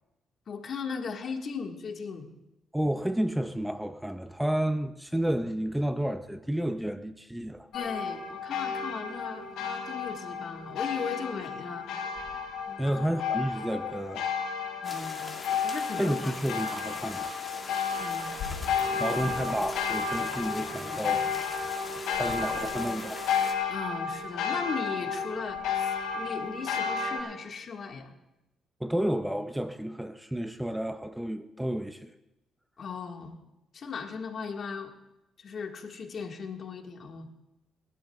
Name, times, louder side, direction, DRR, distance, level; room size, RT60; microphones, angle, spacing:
voice 1, 0.5-2.3 7.7-11.9 12.7-13.1 14.8-15.3 15.6-16.3 18.0-18.3 18.9-19.5 23.7-28.1 32.8-33.4 33.7-34.9 35.4-37.3, left 5 dB, 55° left, 1.7 m, -38 dB
voice 2, 2.7-7.7 12.8-14.3 16.0-17.3 19.0-21.3 22.1-23.2 28.8-32.1, right 1 dB, 5° right, 0.5 m, -31 dB
sound 1, 7.7-27.2, left 6 dB, 90° left, 3.4 m, -32 dB
sound 2, 14.8-23.5, left 3 dB, 30° left, 2.2 m, -41 dB
29.5 x 12.0 x 2.4 m
cardioid pair, 90°, 0 cm